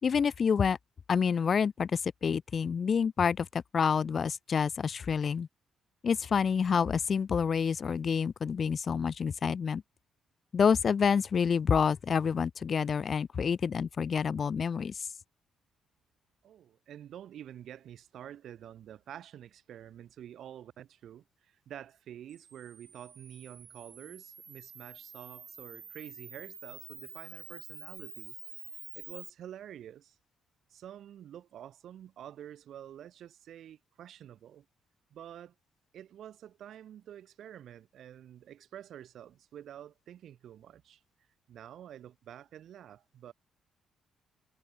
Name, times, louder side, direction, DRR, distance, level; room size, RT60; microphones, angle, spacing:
voice 1, 0.0-0.8 1.1-5.5 6.0-9.8 10.5-15.1, left 6 dB, 45° left, 0.8 m, -28 dB
voice 2, 16.4-28.4 28.9-30.2 30.7-34.7 35.1-35.5 35.9-41.0 41.5-43.3, right 10 dB, 70° right, 4.4 m, -48 dB
Camera, 22.3-29.3, right 6 dB, 45° right, 2.8 m, -48 dB
cardioid pair, 90°, 0 cm